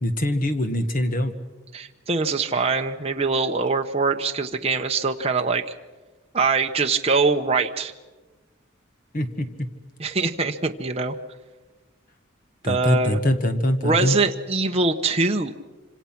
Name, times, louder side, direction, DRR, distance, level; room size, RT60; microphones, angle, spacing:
voice 1, 0.0-1.3 9.1-9.7 12.6-14.2, left 1 dB, 40° left, 8 dB, 1.5 m, -23 dB
voice 2, 1.7-5.6 6.3-7.9 10.0-11.1 12.6-13.2 13.8-15.6, right 4 dB, 30° right, 3 dB, 0.9 m, -23 dB
26.5 x 26.5 x 6.0 m, 1.3 s
head